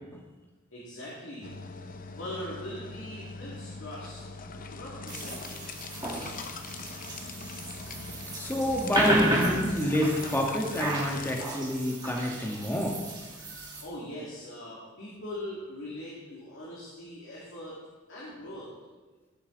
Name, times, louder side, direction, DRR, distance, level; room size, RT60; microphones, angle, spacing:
voice 1, 0.7-1.5 2.2-4.2 4.7-5.6 13.8-17.7 18.1-18.7, left 1 dB, 60° left, -6 dB, 2.4 m, -41 dB
sound 1, 1.4-11.5, left 4 dB, 40° left, 0.7 m, -41 dB
sound 2, 5.1-13.8, right 2 dB, 20° right, 2.1 m, -33 dB
voice 2, 8.3-13.0 13.5-13.7, left 1 dB, 10° left, 0 dB, 1.5 m, -28 dB
17.0 x 7.3 x 3.9 m, 1.3 s
head